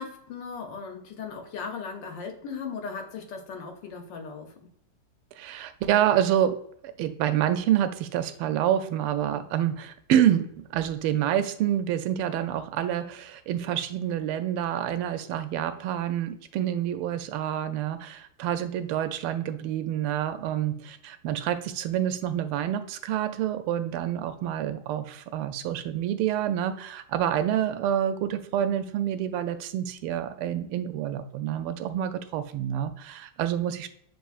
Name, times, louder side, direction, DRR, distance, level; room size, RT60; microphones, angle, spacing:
voice 1, 0.0-4.5, left 5 dB, 65° left, 4 dB, 1.3 m, -37 dB
voice 2, 5.4-6.6 6.8-33.9, right 10 dB, 90° right, 9 dB, 1.5 m, -27 dB
7.4 x 3.0 x 2.3 m, 0.68 s
omnidirectional pair, 2.3 m